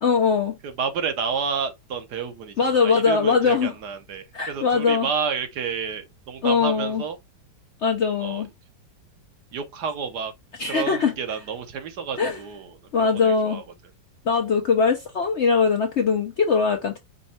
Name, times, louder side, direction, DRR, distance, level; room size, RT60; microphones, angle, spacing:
voice 1, 0.0-0.5 2.6-3.7 4.3-5.1 6.4-7.0 7.8-8.5 10.6-11.1 12.2-12.4 12.9-13.6 14.2-17.0, left 5 dB, 60° left, 0.7 m, -21 dB
voice 2, 0.6-7.2 8.2-8.4 9.5-10.3 10.7-13.6, right 6 dB, 70° right, 1.4 m, -30 dB
5.4 x 2.3 x 4.2 m
omnidirectional pair, 1.9 m